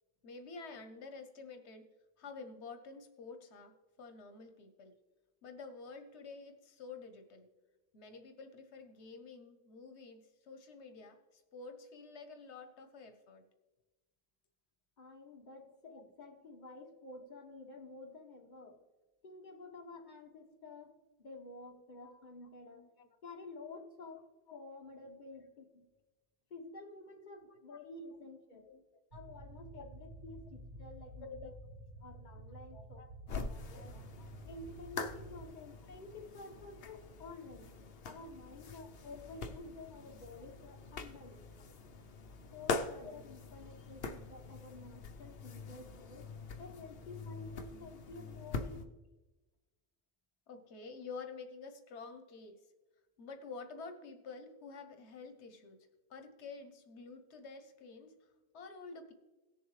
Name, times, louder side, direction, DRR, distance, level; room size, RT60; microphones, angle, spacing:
voice 1, 0.2-1.9 2.2-4.9 5.4-7.5 7.9-13.5 21.9-23.1 24.5-24.6 25.3-25.4 27.4-27.8 28.7-28.8 29.7-29.9 31.2-31.5 32.7-33.1 33.7-34.3 50.5-52.7 53.2-59.1, left 4 dB, 90° left, 7 dB, 1.2 m, -50 dB
voice 2, 15.0-18.8 19.2-22.9 23.2-25.9 26.5-28.7 29.1-31.5 32.0-33.0 33.3-33.9 34.4-37.7 38.0-41.6 42.5-46.3 46.6-48.9, left 2 dB, 45° left, 2 dB, 1.3 m, -51 dB
sound 1, 29.1-35.5, right 1 dB, 80° right, 1.5 m, -51 dB
sound 2, 33.3-48.9, left 4 dB, 65° left, 0.9 m, -44 dB
17.5 x 7.2 x 3.2 m, 1.1 s
omnidirectional pair, 1.1 m